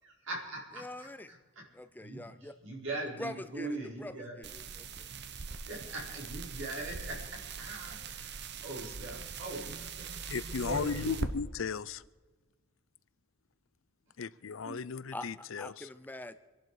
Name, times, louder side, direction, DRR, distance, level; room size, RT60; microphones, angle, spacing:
voice 1, 0.0-1.7 2.0-4.4 5.7-11.2 14.6-14.8, right 2 dB, 75° right, -1 dB, 4.7 m, -42 dB
voice 2, 0.7-1.3 1.7-2.5 3.2-5.1 15.1-16.4, left 1 dB, 10° left, 12 dB, 0.5 m, -44 dB
sound 1, 4.4-11.3, right 4 dB, 55° right, 1.0 m, -41 dB
voice 3, 10.3-12.0 14.2-15.9, left 5 dB, 80° left, 19 dB, 0.6 m, -36 dB
25.0 x 11.5 x 4.9 m, 1.3 s
head